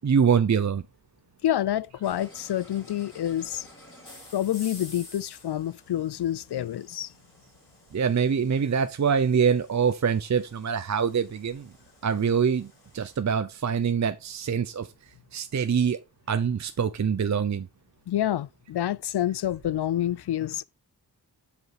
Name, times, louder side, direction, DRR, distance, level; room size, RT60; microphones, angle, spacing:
voice 1, 0.0-0.8 7.9-11.7 12.0-12.7 12.9-14.9 15.3-16.0 16.3-17.7, right 6 dB, 40° right, 0.6 m, -24 dB
voice 2, 1.4-3.7 4.3-7.1 18.1-20.6, left 12 dB, 70° left, 0.5 m, -28 dB
sound 1, 2.0-13.2, left 1 dB, 30° left, 4.4 m, -51 dB
7.9 x 5.0 x 5.0 m
wide cardioid pair, 100°, 41 cm